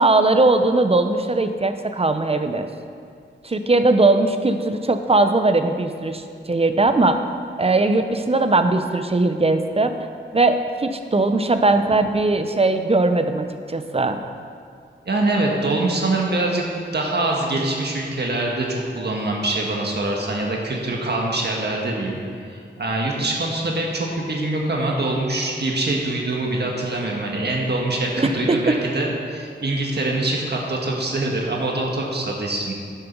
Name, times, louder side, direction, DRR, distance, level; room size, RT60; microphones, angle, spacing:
voice 1, 0.0-2.7 3.4-6.2 6.5-7.2 7.6-10.0 10.3-14.2 28.2-28.8, right 2 dB, 30° right, 8 dB, 0.7 m, -19 dB
voice 2, 15.0-16.6 16.9-32.7, right 2 dB, 60° right, -1 dB, 1.5 m, -24 dB
11.5 x 7.0 x 5.3 m, 2.2 s
wide cardioid pair, 100°, 19 cm